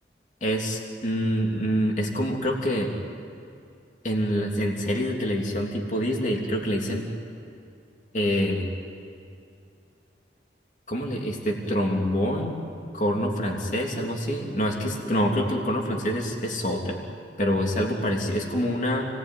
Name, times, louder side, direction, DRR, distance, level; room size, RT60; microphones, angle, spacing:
voice 1, 0.4-2.9 4.0-7.1 8.1-8.7 10.9-12.6 12.9-17.0 17.4-19.1, equal, 45° left, 0 dB, 3.1 m, -26 dB
29.5 x 20.0 x 9.4 m, 2.5 s
head